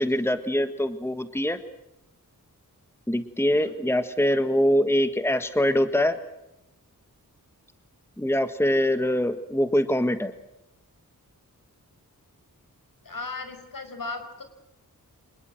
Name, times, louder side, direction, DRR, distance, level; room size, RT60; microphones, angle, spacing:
voice 1, 0.0-1.6 3.1-6.2 8.2-10.3, left 1 dB, 5° left, 10 dB, 1.6 m, -23 dB
voice 2, 13.0-14.4, left 3 dB, 70° left, 7 dB, 5.4 m, -36 dB
26.5 x 20.5 x 7.9 m, 0.88 s
wide cardioid pair, 90°, 35 cm